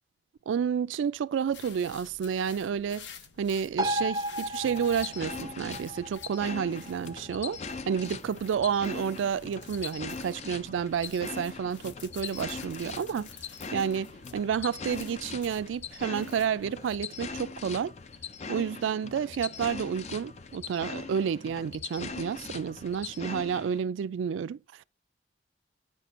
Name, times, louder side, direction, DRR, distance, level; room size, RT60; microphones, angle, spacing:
voice 1, 0.5-3.1 3.4-7.6 7.9-13.3 13.7-17.9 18.5-24.8, right 7 dB, 90° right, 0.3 m, -30 dB
sound 1, 1.5-17.0, left 7 dB, 80° left, 0.7 m, -51 dB
sound 2, 3.8-10.7 11.1-11.2, equal, 20° right, 0.5 m, -37 dB
sound 3, 4.6-23.8, left 4 dB, 35° left, 0.4 m, -41 dB
8.9 x 5.9 x 2.5 m
head